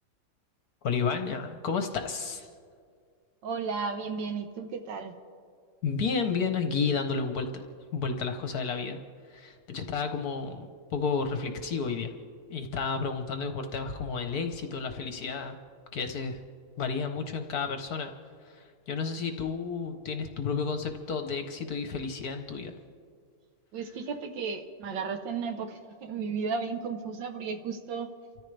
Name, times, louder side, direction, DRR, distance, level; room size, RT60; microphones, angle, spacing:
voice 1, 0.8-2.5 5.8-7.6 7.9-9.0 9.3-12.1 12.5-15.6 15.9-16.4 16.8-18.1 18.5-22.7, left 5 dB, 60° left, 6 dB, 1.2 m, -31 dB
voice 2, 3.4-5.1 23.7-28.1, right 5 dB, 70° right, 7 dB, 1.6 m, -34 dB
29.5 x 14.0 x 3.3 m, 2.2 s
omnidirectional pair, 2.2 m